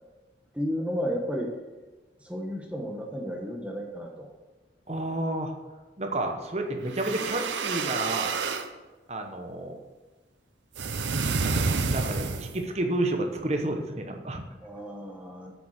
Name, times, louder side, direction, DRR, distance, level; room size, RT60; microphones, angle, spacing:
voice 1, 0.5-1.6 2.2-4.3 14.6-15.5, equal, 5° right, 1 dB, 1.1 m, -33 dB
voice 2, 4.9-5.5 6.0-8.3 9.1-9.8 11.4-14.4, right 1 dB, 35° right, 4 dB, 1.0 m, -30 dB
sound 1, 6.9-8.7 10.8-12.6, right 4 dB, 90° right, 0.8 m, -29 dB
8.0 x 7.0 x 6.5 m, 1.2 s
head